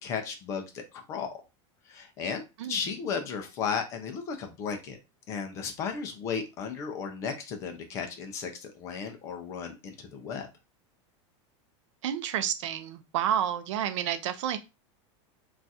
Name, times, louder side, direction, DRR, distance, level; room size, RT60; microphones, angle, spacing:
voice 1, 0.0-1.4 1.9-2.4 2.7-5.0 5.3-10.5, left 6 dB, 20° left, 0.3 m, -35 dB
voice 2, 12.0-14.6, right 10 dB, 75° right, 0.5 m, -30 dB
2.4 x 2.3 x 4.0 m
supercardioid pair, 180°, 16 cm